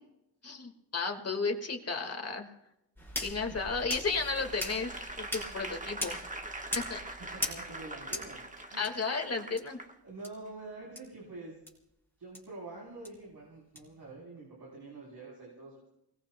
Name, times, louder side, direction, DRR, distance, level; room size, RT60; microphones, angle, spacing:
voice 1, 0.4-2.5 3.2-4.9 5.2-6.2 6.7-7.0 8.8-9.8, left 4 dB, 40° left, 4 dB, 1.8 m, -33 dB
sound 1, 3.0-8.9 9.6-9.7 10.2-10.3 10.9-11.0 11.7-11.8 12.3-12.4 13.0-13.1 13.7-13.8, left 1 dB, 5° left, 4.6 m, -40 dB
Applause / Crowd, 4.2-9.9 10.5-10.6, right 2 dB, 20° right, 1.2 m, -43 dB
voice 2, 7.3-8.8 10.0-11.7 12.2-15.9, right 2 dB, 65° right, -4 dB, 4.0 m, -46 dB
30.0 x 19.5 x 2.2 m, 0.87 s
wide cardioid pair, 110°, 40 cm